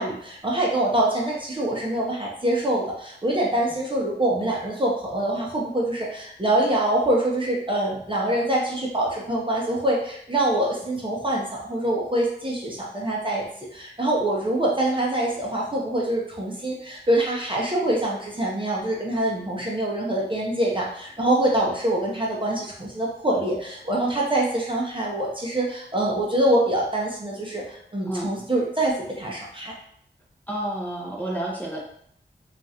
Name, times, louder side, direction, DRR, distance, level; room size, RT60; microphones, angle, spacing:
voice 1, 0.0-13.5 13.7-29.7, right 1 dB, 25° right, -3 dB, 0.7 m, -25 dB
voice 2, 30.5-31.8, right 1 dB, 10° left, -4 dB, 0.7 m, -30 dB
3.0 x 2.4 x 2.7 m, 0.67 s
wide cardioid pair, 80°, 19 cm